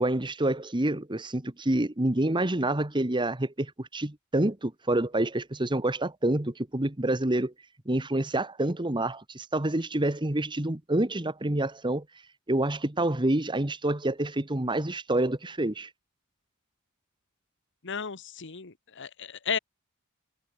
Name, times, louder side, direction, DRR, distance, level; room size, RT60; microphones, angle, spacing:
voice 1, 0.0-7.5 7.8-12.0 12.5-15.9, right 1 dB, 20° right, 1.3 m, -27 dB
voice 2, 17.8-19.6, left 7 dB, 55° left, 1.2 m, -34 dB
head